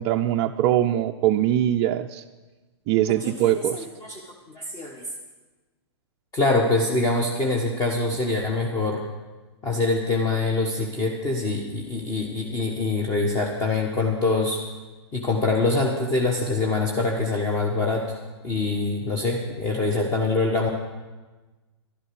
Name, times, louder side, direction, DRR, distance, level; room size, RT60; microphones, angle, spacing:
voice 1, 0.0-2.2 2.9-3.9, right 12 dB, 35° right, 4 dB, 0.4 m, -22 dB
voice 2, 3.2-4.2 4.5-5.1 6.3-9.0 9.6-14.6 15.1-18.1 18.4-20.7, left 3 dB, 25° left, 0 dB, 1.3 m, -24 dB
11.5 x 11.0 x 6.1 m, 1.2 s
hypercardioid pair, 115°, 15 cm